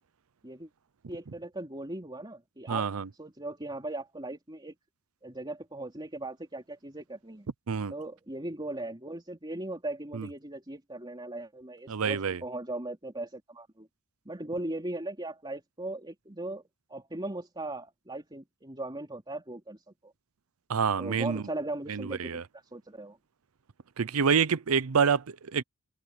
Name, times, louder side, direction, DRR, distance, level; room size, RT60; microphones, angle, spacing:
voice 1, 1.1-2.9 3.2-4.7 5.2-7.5 7.9-13.9 14.2-16.6 16.9-20.1 21.0-23.2, right 2 dB, 20° right, 3.3 m, -38 dB
voice 2, 2.7-3.1 7.7-7.9 10.1-10.3 11.9-12.4 20.7-21.4 21.9-22.4 24.0-25.6, right 6 dB, 75° right, 0.6 m, -27 dB
head